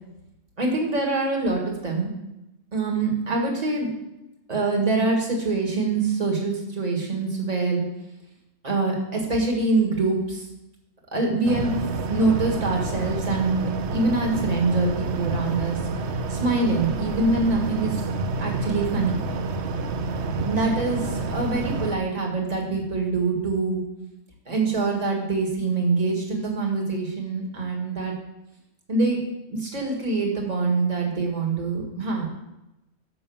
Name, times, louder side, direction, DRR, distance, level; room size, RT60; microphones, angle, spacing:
voice 1, 0.6-2.1 2.7-3.9 4.5-7.9 8.6-10.5 11.1-11.7 12.1-15.8 16.3-18.0 18.4-19.3 20.4-23.8 24.5-28.1 28.9-29.2 29.5-32.3, right 3 dB, 25° right, 0 dB, 1.8 m, -24 dB
sound 1, 11.4-22.0, right 3 dB, 60° right, 0.8 m, -29 dB
7.0 x 6.3 x 7.1 m, 0.93 s
omnidirectional pair, 1.5 m